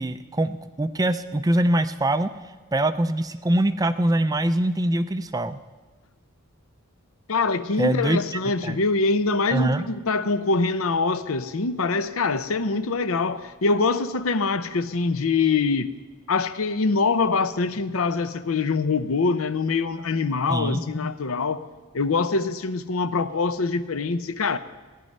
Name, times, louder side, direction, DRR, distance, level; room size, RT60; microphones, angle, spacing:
voice 1, 0.0-2.3 2.7-5.6 7.8-8.2 8.6-8.8 9.5-9.9 20.5-20.8, right 1 dB, 15° right, 0.4 m, -23 dB
voice 2, 7.3-15.9 16.3-21.6 21.9-24.6, left 4 dB, 70° left, 0.6 m, -24 dB
16.5 x 10.5 x 5.4 m
head